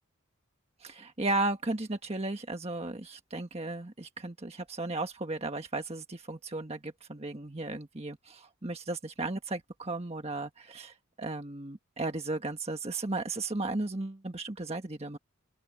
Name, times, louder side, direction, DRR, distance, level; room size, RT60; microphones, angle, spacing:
voice 1, 0.8-15.2, right 2 dB, 30° right, 1.4 m, -35 dB
open air
head